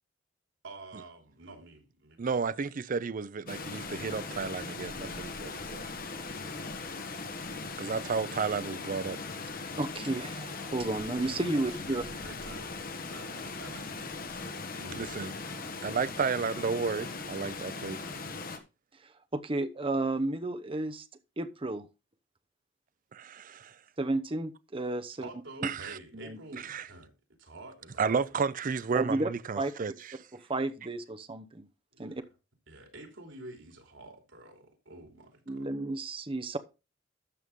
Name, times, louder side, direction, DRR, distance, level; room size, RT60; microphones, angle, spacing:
voice 1, 0.6-2.6 4.9-5.7 7.0-7.3 11.5-14.5 14.8-15.1 25.2-27.1 27.4-28.2 31.9-32.3 32.7-35.7, right 2 dB, 85° right, 3.1 m, -49 dB
voice 2, 2.2-5.8 7.8-9.2 15.0-15.3 15.8-18.2 23.1-23.8 25.6-26.0 26.6-26.9 28.0-29.9, right 5 dB, 45° right, 0.5 m, -32 dB
Water, 3.5-18.6, left 3 dB, 50° left, 1.5 m, -39 dB
voice 3, 9.8-12.0 19.3-21.1 21.4-21.9 24.0-25.3 26.1-26.4 28.9-29.3 29.6-29.7 30.3-31.7 32.0-32.2 35.5-36.6, right 2 dB, 30° right, 0.9 m, -32 dB
12.5 x 6.9 x 3.7 m
head